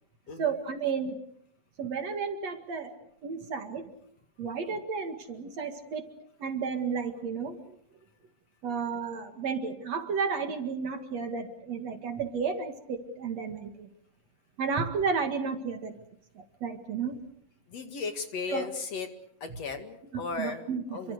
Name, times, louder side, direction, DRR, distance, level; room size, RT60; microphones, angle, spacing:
voice 1, 0.4-1.2 1.8-2.9 3.2-3.9 4.4-6.1 6.4-7.6 8.6-13.9 14.6-16.0 16.3-17.2 18.5-18.7 20.4-21.1, right 5 dB, 55° right, 6 dB, 2.9 m, -32 dB
voice 2, 17.7-19.1 19.4-20.6 20.9-21.1, left 4 dB, 50° left, 6 dB, 2.9 m, -35 dB
29.0 x 24.5 x 6.5 m, 0.70 s
omnidirectional pair, 3.9 m